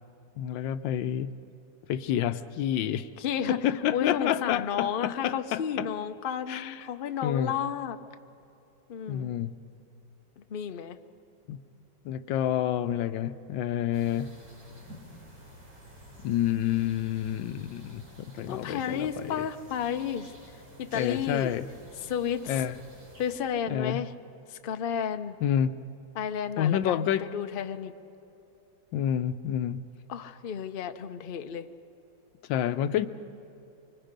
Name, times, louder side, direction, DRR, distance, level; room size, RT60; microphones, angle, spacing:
voice 1, 0.4-1.3 1.9-3.1 3.5-5.9 6.5-6.9 7.2-7.6 9.1-9.6 11.5-11.6 12.0-14.3 16.2-19.5 20.9-21.7 22.5-22.8 23.7-24.0 25.4-25.8 26.6-27.3 28.9-29.8 32.5-33.1, left 10 dB, 90° left, 12 dB, 1.4 m, -29 dB
voice 2, 3.2-3.6 3.9-8.0 8.9-9.3 10.4-11.0 18.5-20.3 20.8-21.5 22.0-22.6 23.2-24.1 24.5-25.4 26.1-27.9 30.1-31.7, left 8 dB, 60° left, 8 dB, 0.5 m, -32 dB
sound 1, 13.9-23.4, equal, 85° right, 4.9 m, -50 dB
25.0 x 24.5 x 5.2 m, 2.8 s
omnidirectional pair, 2.0 m